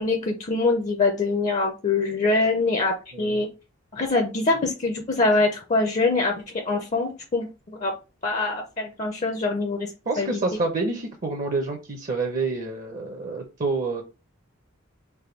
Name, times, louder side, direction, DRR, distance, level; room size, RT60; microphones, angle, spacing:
voice 1, 0.0-3.5 3.9-7.9 8.2-9.9 10.2-10.4, left 3 dB, 35° left, 4 dB, 0.5 m, -24 dB
voice 2, 10.1-14.0, right 3 dB, 40° right, 3 dB, 0.6 m, -28 dB
3.4 x 2.2 x 4.3 m, 0.30 s
head